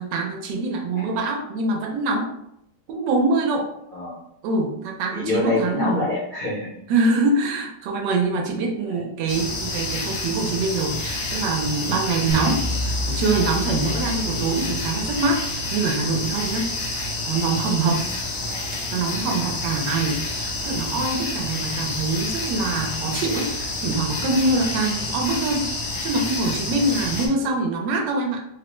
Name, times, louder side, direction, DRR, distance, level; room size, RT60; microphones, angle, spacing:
voice 1, 0.0-2.3 2.9-3.7 4.4-6.0 6.9-16.7 17.3-18.1 18.9-28.4, right 3 dB, 75° right, 2 dB, 1.1 m, -24 dB
voice 2, 5.1-6.8 8.5-9.1 18.4-18.7 19.7-19.9, left 2 dB, 50° left, -9 dB, 0.6 m, -28 dB
sound 1, 9.3-27.3, left 2 dB, 80° left, 1.5 m, -29 dB
sound 2, 12.3-17.4, left 2 dB, 55° right, 0.9 m, -32 dB
3.5 x 2.0 x 3.0 m, 0.78 s
omnidirectional pair, 2.0 m